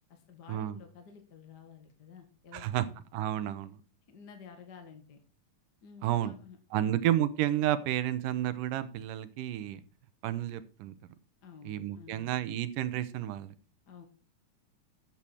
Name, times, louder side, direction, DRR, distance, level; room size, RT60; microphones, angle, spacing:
voice 1, 0.1-3.0 4.1-5.2 5.8-7.1 11.4-12.4 13.9-14.0, left 6 dB, 40° left, 6 dB, 1.7 m, -52 dB
voice 2, 2.5-2.9 3.1-3.8 6.0-6.3 6.7-9.8 10.2-11.0 11.6-13.5, right 12 dB, 90° right, 14 dB, 2.5 m, -31 dB
12.0 x 7.8 x 4.5 m, 0.37 s
omnidirectional pair, 3.7 m